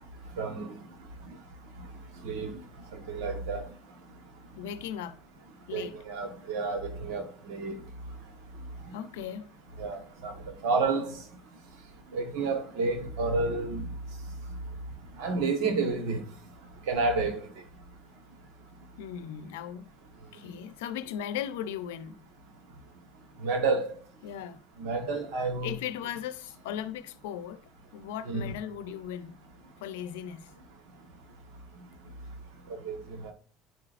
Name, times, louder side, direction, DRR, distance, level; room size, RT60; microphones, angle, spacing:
voice 1, 0.4-0.7 2.2-2.5 2.9-3.6 5.7-7.8 9.8-10.3 10.6-11.2 12.1-13.8 15.2-16.2 16.9-17.4 23.4-23.9 24.8-25.8 28.3-28.5 32.8-33.0 33.2-33.3, right 3 dB, 75° right, 1.3 m, -30 dB
voice 2, 4.6-5.2 5.7-6.0 8.9-9.5 19.0-19.9 20.3-22.2 24.2-24.6 25.6-27.6 27.9-29.4 29.8-30.5, left 9 dB, 85° left, 0.6 m, -37 dB
10.5 x 4.9 x 2.5 m
supercardioid pair, 85°, 0 cm